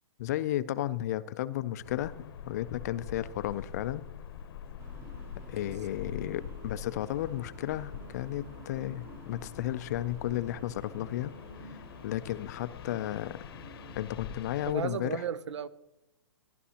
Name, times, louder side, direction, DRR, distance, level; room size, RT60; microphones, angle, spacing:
voice 1, 0.2-4.1 5.5-11.3 11.6-13.4 14.0-15.2, left 13 dB, 35° left, 0.3 m, -33 dB
sound 1, 1.8-14.7, left 7 dB, 55° left, 0.8 m, -45 dB
sound 2, 4.8-14.0, right 1 dB, 15° right, 0.9 m, -51 dB
voice 2, 14.7-15.7, right 8 dB, 85° right, 0.5 m, -35 dB
14.0 x 11.0 x 2.8 m
hypercardioid pair, 155°, 15 cm